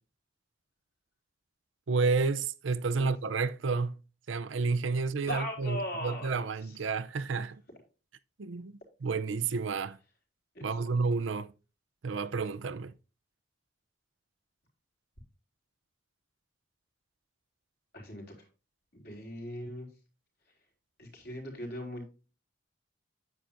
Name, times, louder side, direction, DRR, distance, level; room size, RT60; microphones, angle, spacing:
voice 1, 1.9-4.0 4.3-7.6 8.4-8.7 9.0-10.0 10.6-11.5 12.0-12.9, right 4 dB, 70° right, 0.6 m, -30 dB
voice 2, 5.3-6.8 10.5-10.9 17.9-18.5 18.9-19.9 21.0-22.1, equal, 55° left, 3.9 m, -39 dB
9.5 x 8.9 x 2.6 m
head